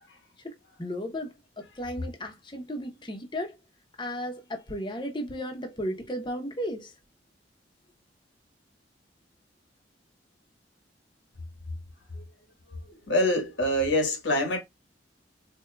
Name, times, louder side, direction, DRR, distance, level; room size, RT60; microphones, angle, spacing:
voice 1, 0.4-3.5 4.0-6.9, equal, 25° left, 0.8 m, -35 dB
voice 2, 13.1-14.6, left 1 dB, 80° left, 1.4 m, -25 dB
4.5 x 2.8 x 2.2 m
head